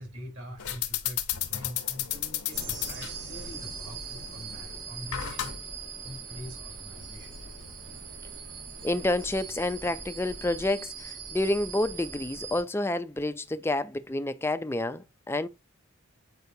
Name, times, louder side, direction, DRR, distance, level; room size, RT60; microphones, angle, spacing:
voice 1, 0.0-5.6 6.0-7.3, equal, 60° right, 3.7 m, -44 dB
sound 1, 0.6-10.6, left 11 dB, 85° left, 0.9 m, -36 dB
sound 2, 2.5-12.6, right 5 dB, 90° right, 4.1 m, -41 dB
voice 2, 8.8-15.5, left 2 dB, 10° left, 0.3 m, -29 dB
8.1 x 4.7 x 2.7 m
head